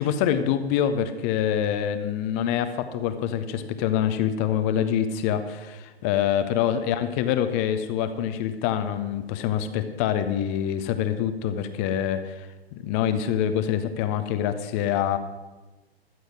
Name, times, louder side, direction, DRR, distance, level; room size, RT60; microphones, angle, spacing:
voice 1, 0.0-15.2, left 9 dB, 15° left, 11 dB, 0.4 m, -25 dB
13.5 x 7.8 x 6.2 m, 1.1 s
figure-of-eight pair, 120°, 32 cm